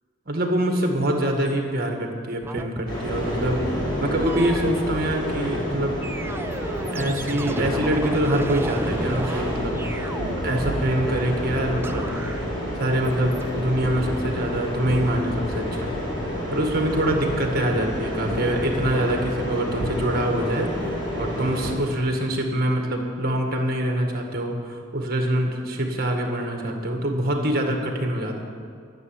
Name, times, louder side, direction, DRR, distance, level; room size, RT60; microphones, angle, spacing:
voice 1, 0.3-6.0 6.9-10.1 10.4-12.1 12.8-15.9 16.5-20.7 21.2-28.4, right 1 dB, 45° right, 2 dB, 1.8 m, -25 dB
sound 1, 2.4-2.9 3.4-4.7 6.0-11.5 11.8-12.5 13.0-13.6 14.0-14.2, right 1 dB, 10° right, 0.4 m, -34 dB
sound 2, 2.9-21.7, equal, 20° left, 4.2 m, -29 dB
13.5 x 7.6 x 9.9 m, 2.3 s
head